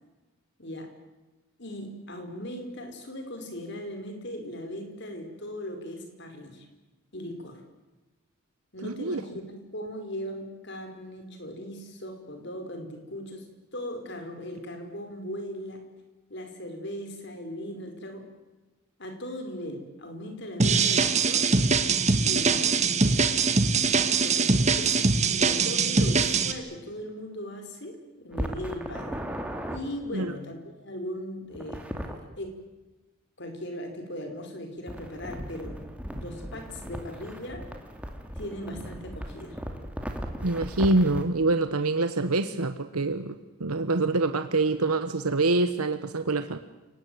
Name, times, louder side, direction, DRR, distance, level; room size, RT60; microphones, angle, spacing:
voice 1, 0.6-0.9 1.6-6.7 7.1-7.6 8.7-13.5 13.7-15.8 16.3-18.2 19.0-21.5 22.2-22.9 24.2-25.0 25.3-29.2 29.7-32.6 33.4-35.8 36.1-37.6 38.3-39.6, equal, 50° left, 6 dB, 5.0 m, -38 dB
voice 2, 8.8-9.2 30.1-30.3 40.4-46.6, right 2 dB, 90° right, 10 dB, 1.2 m, -25 dB
sound 1, 20.6-26.5, right 4 dB, 30° right, 1.6 m, -22 dB
sound 2, 28.3-29.8 31.5-32.2 34.9-41.2, equal, 5° right, 2.4 m, -37 dB
29.0 x 18.5 x 9.5 m, 1.1 s
head